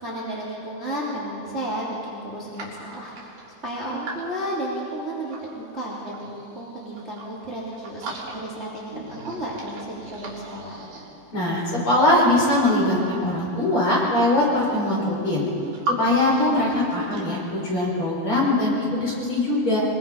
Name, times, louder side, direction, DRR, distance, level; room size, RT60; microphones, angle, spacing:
voice 1, 0.0-3.3 3.6-10.8, right 1 dB, 15° right, -6 dB, 3.3 m, -33 dB
sound 1, 2.5-5.5 5.9-7.4 7.7-8.6 8.9-11.5 12.1-13.4 14.1-14.2 14.4-16.0 16.2-17.2, right 2 dB, 55° right, 4.6 m, -37 dB
voice 2, 11.3-15.5 15.9-19.8, left 1 dB, 30° left, -5 dB, 6.1 m, -21 dB
24.0 x 23.0 x 5.5 m, 2.8 s
omnidirectional pair, 4.5 m